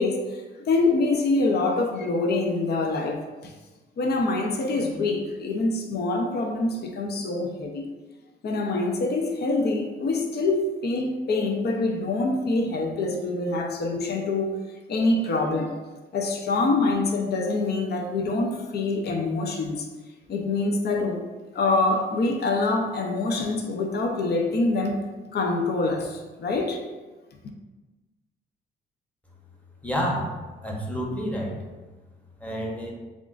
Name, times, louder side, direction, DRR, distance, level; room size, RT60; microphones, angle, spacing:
voice 1, 0.0-3.5 4.0-7.9 8.4-14.5 14.9-15.8 16.1-19.9 20.3-21.2 21.5-25.0 25.3-26.8, left 3 dB, 55° left, 2 dB, 0.7 m, -25 dB
voice 2, 29.8-30.3 30.6-31.6 32.4-32.9, equal, 5° left, -1 dB, 1.0 m, -28 dB
7.1 x 2.5 x 2.5 m, 1.2 s
cardioid pair, 90°, 20 cm